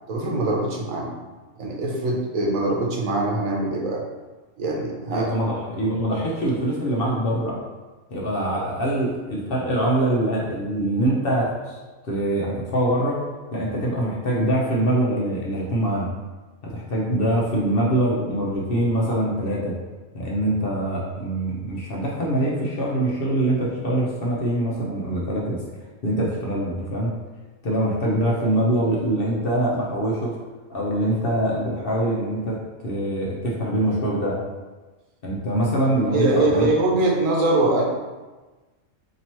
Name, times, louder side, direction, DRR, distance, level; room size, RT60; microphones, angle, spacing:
voice 1, 0.1-1.2 1.6-4.0 4.6-5.3 36.1-37.8, right 2 dB, 80° right, -1 dB, 1.1 m, -22 dB
voice 2, 5.1-7.6 8.1-11.8 12.0-13.2 13.5-16.1 16.6-19.7 20.1-25.6 26.0-27.1 27.6-30.3 30.7-32.6 32.8-34.4 35.2-36.7, right 1 dB, 55° left, -4 dB, 0.8 m, -24 dB
2.9 x 2.9 x 4.3 m, 1.2 s
omnidirectional pair, 1.4 m